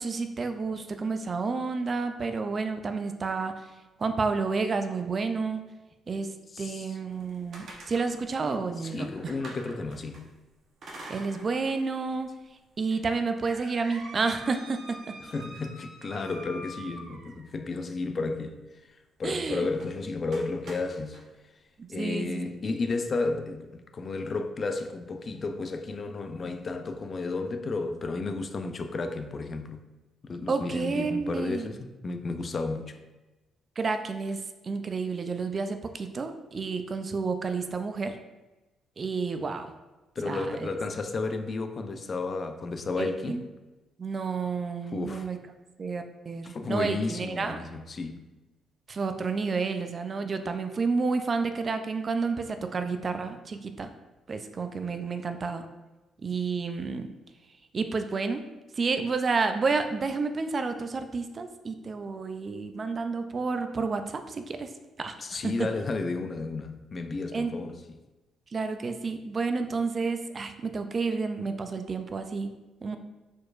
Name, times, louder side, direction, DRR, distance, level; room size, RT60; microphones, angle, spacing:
voice 1, 0.0-3.5 4.0-5.6 6.1-6.3 6.6-9.3 11.1-12.3 12.8-15.0 19.2-19.7 21.8-22.4 30.5-31.7 33.8-38.2 39.0-39.7 40.3-40.7 43.0-43.4 44.0-45.4 45.8-47.6 48.9-53.9 54.3-55.7 56.2-57.1 57.7-58.4 58.8-64.7 65.0-65.2 65.4-65.7 67.3-67.5 68.5-72.5 72.8-73.0, right 4 dB, 40° right, 0.4 m, -30 dB
voice 2, 6.5-7.0 8.8-10.3 15.2-18.6 19.2-21.2 21.9-29.8 30.2-33.0 40.2-43.4 44.9-45.3 46.4-48.3 65.2-68.0, left 3 dB, 40° left, 0.4 m, -32 dB
sound 1, 7.1-10.2 10.8-11.8 12.2-12.3 12.9-17.6 19.7-19.9 20.3-21.2, right 1 dB, 60° right, 0.9 m, -45 dB
4.6 x 4.4 x 2.5 m
cardioid pair, 90°, 0 cm